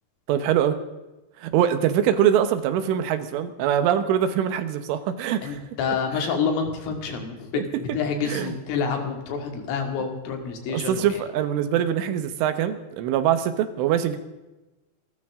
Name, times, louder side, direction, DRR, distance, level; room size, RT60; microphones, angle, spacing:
voice 1, 0.3-0.8 1.4-5.6 7.5-7.6 8.3-8.6 10.7-14.2, right 10 dB, 80° right, 10 dB, 3.6 m, -23 dB
voice 2, 5.4-11.2, left 5 dB, 85° left, 3 dB, 5.1 m, -28 dB
27.5 x 14.0 x 3.7 m, 1.0 s
omnidirectional pair, 5.6 m